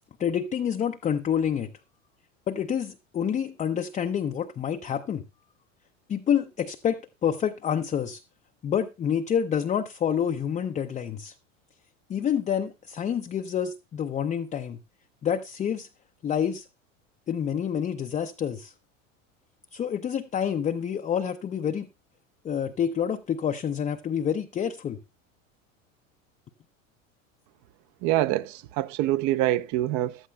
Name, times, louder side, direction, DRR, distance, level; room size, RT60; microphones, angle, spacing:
voice 1, 0.2-1.7 2.5-5.2 6.1-8.2 8.6-11.3 12.1-14.8 15.2-15.9 16.2-16.7 17.3-18.7 19.7-21.9 22.4-25.0, left 8 dB, 20° left, 0.4 m, -28 dB
voice 2, 28.0-30.2, right 14 dB, 50° right, 0.7 m, -25 dB
15.0 x 11.0 x 2.2 m
hypercardioid pair, 100°, 39 cm